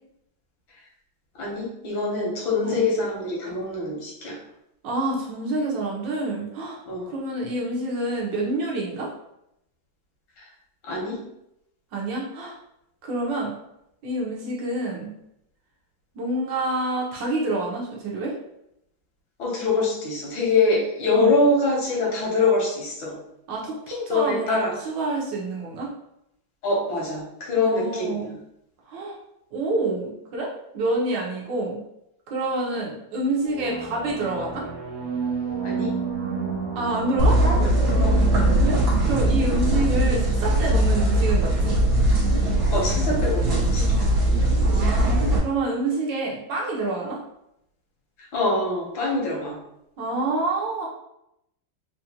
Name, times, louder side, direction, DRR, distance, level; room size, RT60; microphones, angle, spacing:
voice 1, 1.4-4.3 6.9-7.1 10.9-11.1 19.4-23.1 24.1-24.7 26.6-28.2 35.6-35.9 38.0-38.2 42.7-43.8 48.3-49.5, left 3 dB, 85° left, -3 dB, 1.9 m, -24 dB
voice 2, 4.8-6.8 7.1-9.1 11.9-12.6 13.0-13.6 14.0-15.1 16.1-18.3 21.1-21.3 23.5-25.9 27.5-28.3 28.9-29.2 29.5-31.8 32.3-34.6 36.7-37.4 37.7-37.8 38.6-38.8 39.1-41.8 44.6-47.2 50.0-50.9, right 2 dB, 70° right, -3 dB, 1.6 m, -27 dB
sound 1, 33.4-40.8, right 5 dB, 90° right, 1.5 m, -32 dB
sound 2, 37.2-45.4, right 1 dB, 50° right, 1.3 m, -20 dB
4.4 x 2.5 x 2.9 m, 0.81 s
omnidirectional pair, 2.1 m